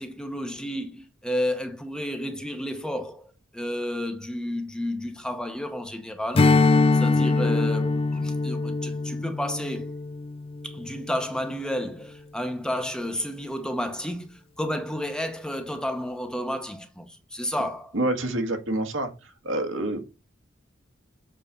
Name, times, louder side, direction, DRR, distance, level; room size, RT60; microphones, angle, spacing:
voice 1, 0.0-6.6 6.9-9.9 10.6-18.0, equal, 5° left, 0.9 m, -31 dB
Strum, 6.3-11.1, left 3 dB, 30° left, 0.3 m, -23 dB
voice 2, 17.9-20.1, right 1 dB, 75° right, 1.5 m, -27 dB
7.4 x 3.9 x 5.4 m
head